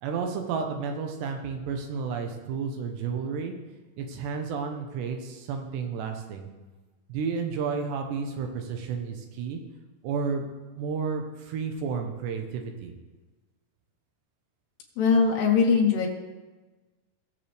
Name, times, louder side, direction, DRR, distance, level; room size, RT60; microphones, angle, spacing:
voice 1, 0.0-3.5 4.0-6.5 7.1-9.6 10.0-10.5 10.8-12.9, right 5 dB, 80° right, 4 dB, 3.2 m, -31 dB
voice 2, 15.0-16.1, left 5 dB, 75° left, -1 dB, 3.2 m, -21 dB
19.0 x 7.3 x 3.4 m, 1.2 s
omnidirectional pair, 4.9 m